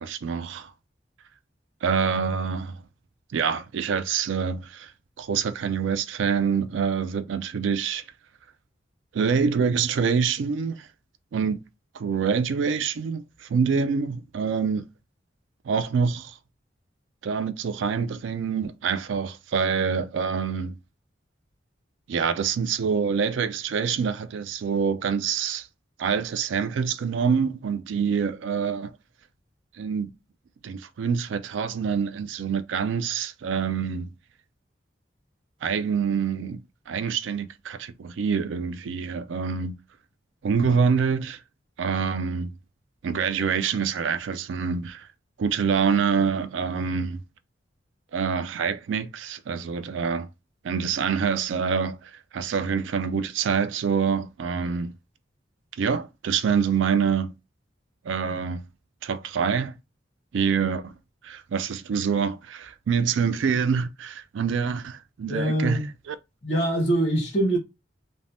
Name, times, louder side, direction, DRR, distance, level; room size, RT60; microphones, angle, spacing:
voice 1, 0.0-0.7 1.8-2.8 3.3-4.9 5.2-8.0 9.1-10.9 11.3-11.6 11.9-14.9 15.7-16.3 17.2-20.8 22.1-25.7 26.0-28.9 29.8-30.1 30.6-34.1 35.6-36.6 36.9-39.8 40.4-41.4 41.8-42.5 43.0-45.1 45.4-47.2 48.1-50.3 50.6-54.9 55.8-57.3 58.0-58.6 59.0-59.7 60.3-60.9 61.2-66.2, right 6 dB, 85° right, 0.3 m, -26 dB
voice 2, 65.3-65.9 66.4-67.6, right 1 dB, 35° left, 1.0 m, -23 dB
3.3 x 2.1 x 2.5 m
head